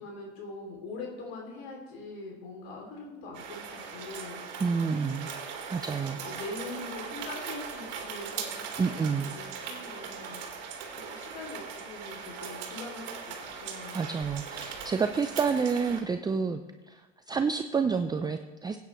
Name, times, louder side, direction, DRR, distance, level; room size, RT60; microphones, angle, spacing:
voice 1, 0.0-4.4 6.1-10.4 10.9-14.0, left 3 dB, 70° left, 0 dB, 2.9 m, -43 dB
sound 1, 3.3-16.0, right 6 dB, 50° right, 2.8 m, -40 dB
voice 2, 4.6-5.3 5.7-6.2 8.8-9.3 13.9-16.6 16.9-18.8, right 5 dB, 15° right, 8 dB, 0.5 m, -29 dB
15.5 x 9.4 x 3.1 m, 1.2 s
hypercardioid pair, 95°, 32 cm